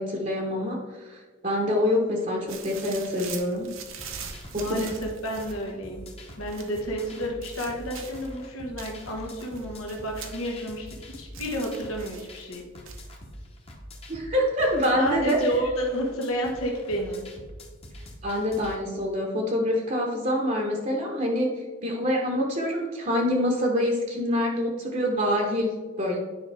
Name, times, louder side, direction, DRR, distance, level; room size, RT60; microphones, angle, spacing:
voice 1, 0.0-3.7 4.5-4.8 14.1-15.4 18.2-21.5 21.8-26.2, left 1 dB, 35° right, 0 dB, 0.9 m, -26 dB
sound 1, 2.5-5.6 6.5-6.9 7.4-8.3 8.8-11.0 11.3-12.4 12.8-13.2, right 7 dB, 75° right, 0.9 m, -42 dB
sound 2, 4.0-18.8, left 1 dB, 30° left, 1.0 m, -44 dB
voice 2, 4.5-6.1 6.4-12.6 14.9-17.2, equal, 85° left, 0 dB, 1.4 m, -30 dB
10.0 x 5.0 x 3.4 m, 1.4 s
head